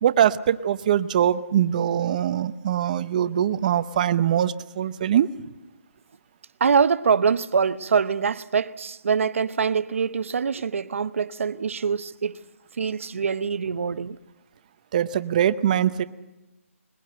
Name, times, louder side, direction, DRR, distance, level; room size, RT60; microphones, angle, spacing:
voice 1, 0.0-5.3 14.9-16.0, right 10 dB, 30° right, 0.8 m, -22 dB
voice 2, 6.6-12.4 12.8-14.2, right 6 dB, 60° right, 1.0 m, -24 dB
21.5 x 21.0 x 7.8 m
hypercardioid pair, 165°, 8 cm